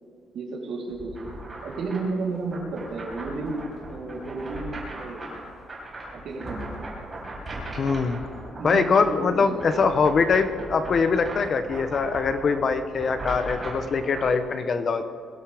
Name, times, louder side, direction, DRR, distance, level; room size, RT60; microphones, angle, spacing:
voice 1, 0.3-1.3 1.6-5.2 6.2-6.7 8.6-9.6, right 3 dB, 60° right, -2 dB, 3.4 m, -32 dB
sound 1, 0.9-14.3, right 1 dB, 20° right, 4.7 m, -38 dB
voice 2, 7.8-8.2 8.6-15.0, left 5 dB, 35° left, 9 dB, 0.8 m, -23 dB
23.0 x 16.0 x 3.5 m, 2.4 s
cardioid pair, 175°, 0 cm